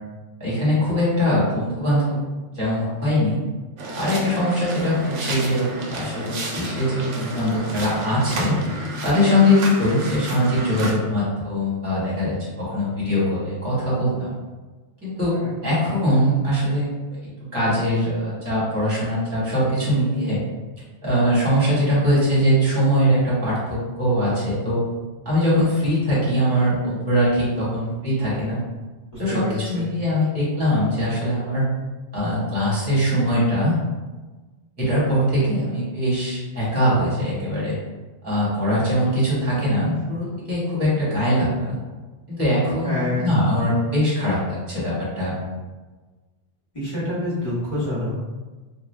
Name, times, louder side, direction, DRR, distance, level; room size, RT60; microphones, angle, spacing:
voice 1, 0.4-2.2 2.5-3.4 4.0-8.5 9.0-14.3 15.0-15.4 15.6-17.2 17.5-20.4 21.0-24.8 25.2-28.6 29.2-31.7 32.1-33.8 34.8-37.7 38.2-41.8 42.3-45.3, equal, 10° right, -9 dB, 1.1 m, -22 dB
sound 1, 3.8-10.9, right 1 dB, 75° right, 0.9 m, -31 dB
voice 2, 29.1-29.8 42.8-43.4 46.7-48.2, left 1 dB, 30° left, -10 dB, 1.3 m, -27 dB
2.7 x 2.3 x 3.2 m, 1.3 s
omnidirectional pair, 1.2 m